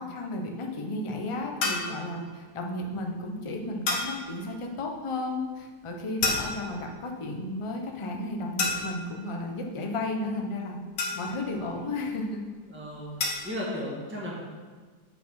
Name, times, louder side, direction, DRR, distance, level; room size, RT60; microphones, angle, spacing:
voice 1, 0.0-10.8 11.1-12.4, left 2 dB, 35° left, 1 dB, 0.5 m, -33 dB
sound 1, 1.6-2.0 3.9-4.2 6.2-6.8 8.6-9.1 11.0-11.5 13.2-13.5, left 3 dB, 55° left, 1.4 m, -29 dB
voice 2, 12.7-13.1 13.4-14.3, left 1 dB, 5° right, -5 dB, 1.5 m, -34 dB
8.1 x 4.2 x 5.6 m, 1.5 s
omnidirectional pair, 1.8 m